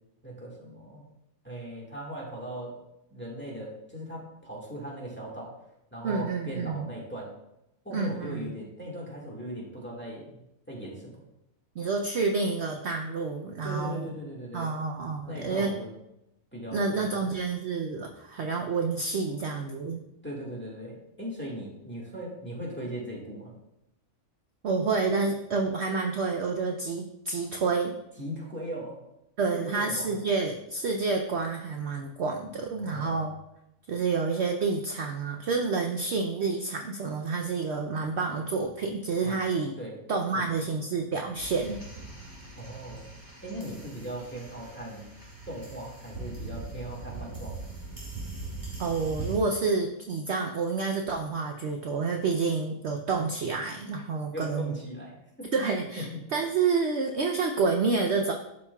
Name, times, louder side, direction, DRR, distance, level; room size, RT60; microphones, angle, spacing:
voice 1, 0.2-1.1 1.4-2.8 3.1-5.5 5.9-7.3 7.8-10.4 10.7-11.2 13.6-14.7 15.3-15.9 16.5-17.3 20.2-23.5 28.2-29.0 29.5-30.2 32.8-33.3 39.2-39.4 39.8-40.0 40.3-40.4 42.5-43.1 43.4-45.1 45.5-47.6 54.3-55.5 56.0-56.2, equal, 10° left, -4 dB, 1.7 m, -39 dB
voice 2, 6.0-6.9 7.9-8.5 11.8-14.1 14.5-15.7 16.7-20.0 24.6-27.9 29.4-33.3 33.9-39.7 40.1-41.8 48.8-54.8 55.5-58.3, right 4 dB, 60° right, 3 dB, 0.8 m, -29 dB
sound 1, 41.4-49.4, right 2 dB, 15° right, 2.0 m, -41 dB
11.5 x 5.3 x 2.3 m, 0.85 s
omnidirectional pair, 1.5 m